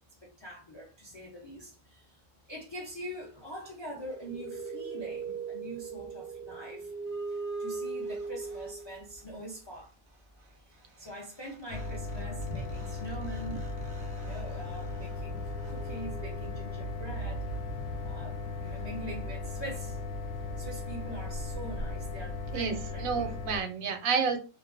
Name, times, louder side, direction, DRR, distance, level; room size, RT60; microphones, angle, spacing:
voice 1, 0.2-2.2 2.5-6.9 7.3-9.9 10.7-13.6 14.1-17.6 18.0-20.0 20.4-23.3, equal, 40° left, 0.4 m, -43 dB
sound 1, 3.8-9.2 11.1-11.2 11.4-16.9, right 4 dB, 55° right, 0.5 m, -41 dB
sound 2, 11.7-23.6, left 2 dB, 75° left, 0.9 m, -37 dB
voice 2, 22.5-24.4, right 6 dB, 85° right, 1.0 m, -30 dB
2.4 x 2.2 x 2.4 m
omnidirectional pair, 1.4 m